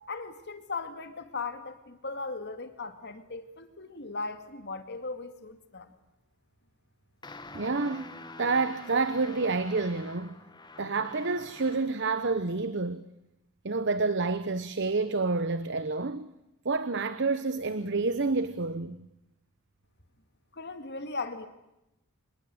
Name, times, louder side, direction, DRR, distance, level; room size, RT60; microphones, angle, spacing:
voice 1, 0.1-5.9 20.5-21.5, left 3 dB, 50° left, 2.3 m, -38 dB
sound 1, 7.2-12.1, left 3 dB, 20° left, 1.4 m, -47 dB
voice 2, 7.5-10.3 10.8-13.0 13.6-16.3 16.6-19.1, right 3 dB, 55° right, 1.0 m, -29 dB
26.0 x 21.0 x 7.9 m
head